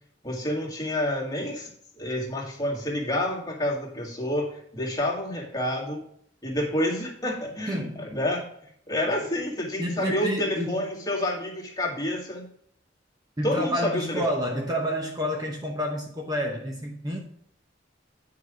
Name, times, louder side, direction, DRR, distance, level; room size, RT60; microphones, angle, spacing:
voice 1, 0.2-1.7 2.0-6.0 6.4-8.5 8.9-12.5 13.4-14.2, left 1 dB, 20° left, 2.0 m, -28 dB
voice 2, 7.7-8.1 9.2-9.3 9.8-10.8 13.4-17.2, equal, 20° right, 1.0 m, -29 dB
9.2 x 4.8 x 4.9 m
head